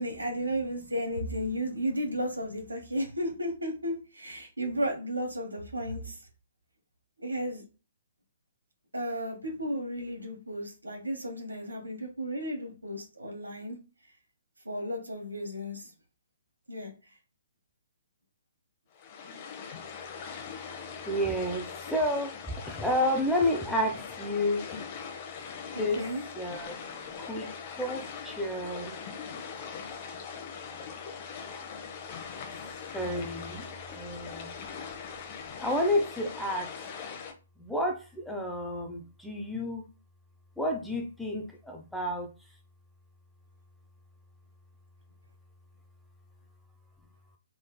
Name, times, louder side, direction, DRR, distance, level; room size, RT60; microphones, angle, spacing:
voice 1, 0.0-6.2 7.2-7.6 8.9-13.8 14.6-15.9 16.7-16.9 25.7-26.3, equal, 80° right, 3 dB, 1.4 m, -34 dB
sound 1, 18.9-37.3, left 6 dB, 35° left, 0.8 m, -41 dB
voice 2, 21.1-24.8 25.8-26.0 26.3-29.0 32.9-34.6 35.6-36.7 37.6-39.9 40.6-42.3, left 1 dB, ahead, 1 dB, 0.6 m, -31 dB
3.7 x 3.6 x 2.2 m, 0.33 s
figure-of-eight pair, 125°, 0 cm